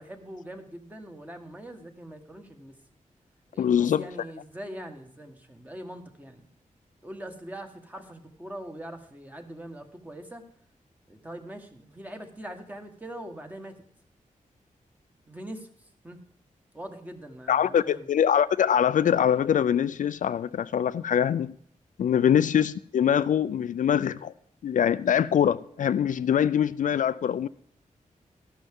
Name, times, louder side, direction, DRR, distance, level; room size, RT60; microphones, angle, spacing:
voice 1, 0.0-2.7 3.5-6.5 7.0-10.4 11.1-13.8 15.3-15.7 16.0-16.2 16.7-18.1 22.2-22.4, right 1 dB, 10° right, 1.4 m, -42 dB
voice 2, 3.6-4.1 17.5-21.5 22.0-24.3 24.6-27.5, left 9 dB, 70° left, 0.4 m, -23 dB
13.5 x 11.5 x 3.6 m
wide cardioid pair, 155°, 14 cm